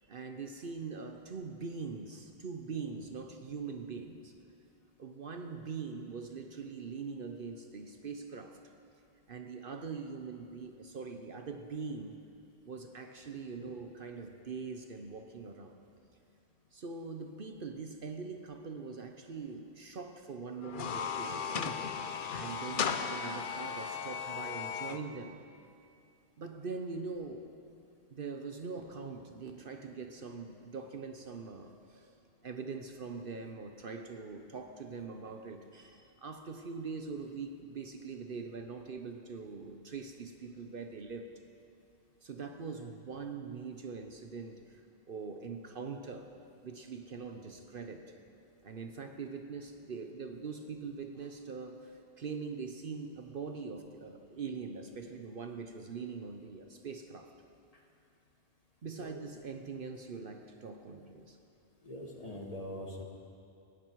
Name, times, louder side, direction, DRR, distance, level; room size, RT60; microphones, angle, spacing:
voice 1, 0.1-4.3 5.0-8.6 9.3-12.2 12.7-15.7 16.7-21.8 22.3-25.4 26.4-27.5 28.1-32.1 32.4-41.3 42.2-44.8 45.1-46.3 46.6-48.1 48.6-57.3 58.8-61.4, right 5 dB, 55° right, 6 dB, 1.0 m, -42 dB
sound 1, 20.6-25.0, left 6 dB, 55° left, 0.8 m, -36 dB
voice 2, 61.8-63.0, left 1 dB, 35° left, 1 dB, 1.8 m, -43 dB
18.0 x 16.5 x 4.7 m, 2.5 s
omnidirectional pair, 1.1 m